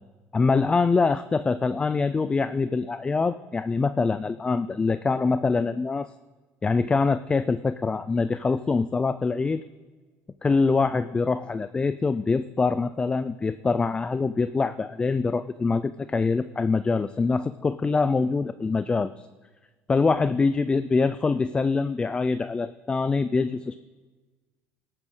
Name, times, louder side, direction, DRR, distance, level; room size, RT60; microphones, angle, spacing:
voice 1, 0.3-6.1 6.6-9.6 10.4-19.3 19.9-23.8, left 4 dB, 20° left, 13 dB, 0.4 m, -24 dB
17.5 x 9.0 x 3.8 m, 1.3 s
cardioid pair, 120°, 5 cm